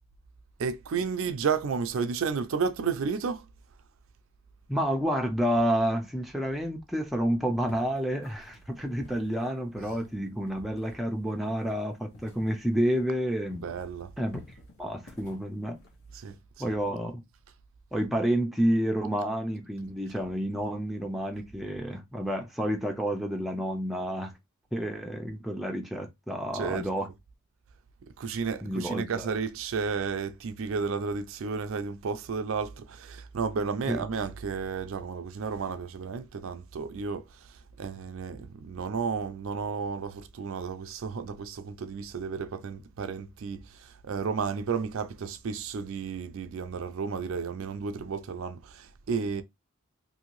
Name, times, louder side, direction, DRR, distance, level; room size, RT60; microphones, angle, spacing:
voice 1, 0.6-3.5 13.6-14.1 16.1-16.4 16.6-16.7 26.5-26.9 28.2-49.4, right 5 dB, 65° right, 0.4 m, -32 dB
voice 2, 4.7-13.6 14.2-14.4 14.8-15.8 16.6-17.2 17.9-24.3 24.7-27.1 28.6-29.3 33.9-34.0, equal, ahead, 0.4 m, -29 dB
sound 1, 7.6-13.2 13.5-16.4, left 2 dB, 65° left, 1.0 m, -51 dB
2.7 x 2.7 x 2.9 m
head